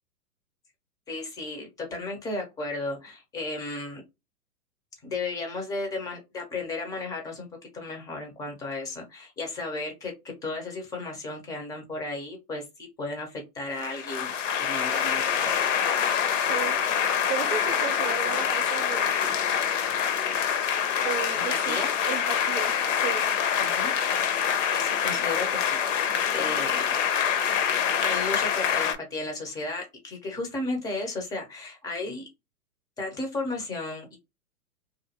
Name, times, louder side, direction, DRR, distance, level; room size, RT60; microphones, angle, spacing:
voice 1, 1.1-4.0 5.0-7.5 7.7-10.1 10.4-14.3 14.6-15.6 21.3-21.9 23.6-23.9 24.7-27.0 28.0-32.3 33.0-34.2, left 2 dB, 10° left, 0.5 m, -34 dB
sound 1, 13.8-28.9, left 8 dB, 55° left, 0.7 m, -25 dB
voice 2, 17.3-19.3 19.7-19.8 21.0-21.8 22.0-23.2, right 10 dB, 50° right, 0.6 m, -35 dB
2.5 x 2.5 x 2.7 m
hypercardioid pair, 110°, 46 cm